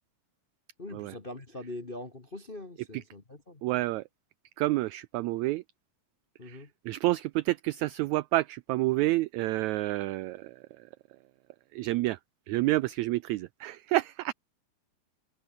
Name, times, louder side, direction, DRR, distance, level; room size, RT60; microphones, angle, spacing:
voice 1, 0.8-3.6 6.4-6.7, left 2 dB, 25° left, 1.1 m, -42 dB
voice 2, 3.6-4.0 4.6-5.6 6.4-10.9 11.7-12.2 12.5-14.3, right 18 dB, 85° right, 1.6 m, -29 dB
omnidirectional pair, 3.9 m